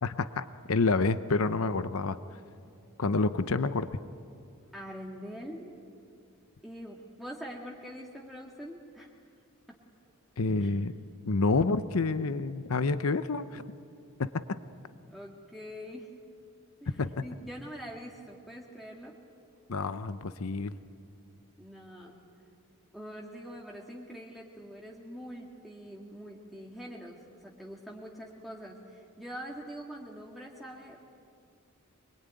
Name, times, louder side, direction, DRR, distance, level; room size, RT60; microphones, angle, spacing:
voice 1, 0.0-2.2 3.0-3.9 10.4-10.9 11.3-13.6 14.2-14.6 17.0-17.1 19.7-20.7, left 3 dB, 80° left, 12 dB, 0.8 m, -28 dB
voice 2, 4.7-5.8 6.6-9.1 10.6-10.7 15.1-16.1 16.8-19.1 21.6-22.2 22.9-31.0, equal, ahead, -3 dB, 1.8 m, -44 dB
25.5 x 22.0 x 9.4 m, 2.4 s
head